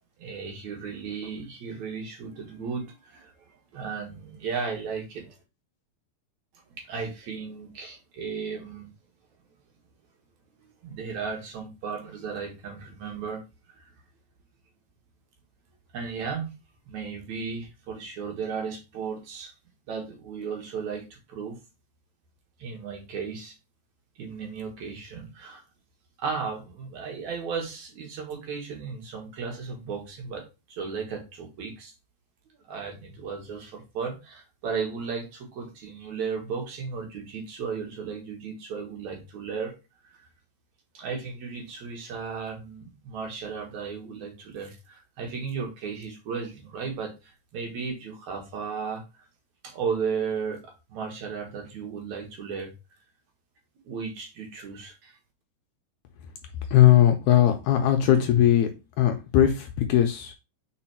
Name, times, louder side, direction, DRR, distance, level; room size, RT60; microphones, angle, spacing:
voice 1, 0.2-5.3 6.8-8.9 10.8-13.4 13.7-13.8 15.9-16.5 16.9-19.5 19.9-21.6 22.6-23.5 24.2-25.6 26.2-31.9 32.7-39.7 40.2-40.3 40.9-49.0 49.6-52.7 53.8-55.2, right 5 dB, 65° right, 2 dB, 2.5 m, -35 dB
voice 2, 56.7-58.7 59.0-60.3, left 11 dB, 75° left, 5 dB, 1.9 m, -19 dB
4.8 x 4.6 x 4.3 m, 0.27 s
omnidirectional pair, 3.8 m